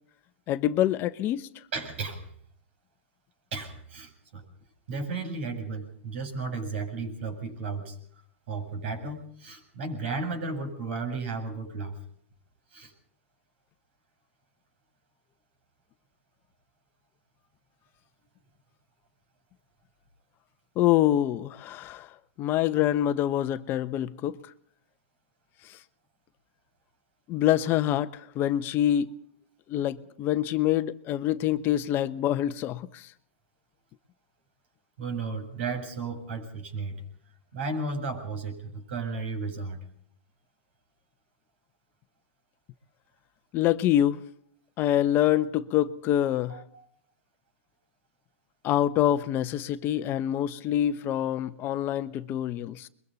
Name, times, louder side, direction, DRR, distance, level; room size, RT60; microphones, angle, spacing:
voice 1, 0.5-1.5 20.8-22.1 22.4-24.4 25.7-25.8 27.3-29.1 29.7-33.1 43.5-44.2 44.8-46.6 48.6-52.9, left 12 dB, 30° left, 0.9 m, -26 dB
voice 2, 1.7-2.2 3.5-4.4 4.9-8.0 8.5-12.0 12.7-12.9 35.0-37.0 37.5-39.8 46.5-46.8, right 4 dB, 65° right, 7.8 m, -34 dB
28.5 x 23.0 x 4.1 m
hypercardioid pair, 130°, 7 cm